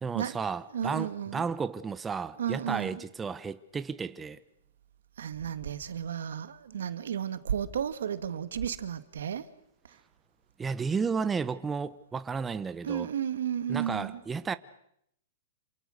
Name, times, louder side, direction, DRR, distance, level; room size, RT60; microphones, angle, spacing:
voice 1, 0.0-4.4 10.6-13.1 13.7-14.5, right 5 dB, 15° right, 1.0 m, -33 dB
voice 2, 0.7-1.4 2.4-3.0 5.2-9.4 12.8-14.2, right 9 dB, 85° right, 2.1 m, -33 dB
28.5 x 27.5 x 6.7 m
hypercardioid pair, 145°, 0 cm